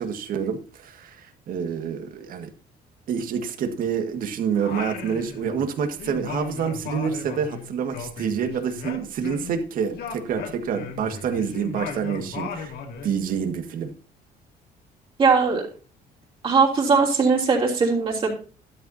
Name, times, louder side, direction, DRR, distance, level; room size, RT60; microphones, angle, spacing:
voice 1, 0.0-2.5 3.1-12.7 13.0-13.9, right 7 dB, 60° right, 1.7 m, -27 dB
Singing, 4.6-5.7 6.0-9.6 9.9-13.1, left 6 dB, 75° left, 2.4 m, -36 dB
voice 2, 15.2-15.6 16.4-18.3, right 5 dB, 35° right, 3.2 m, -19 dB
13.0 x 12.5 x 2.8 m
cardioid pair, 155°, 16 cm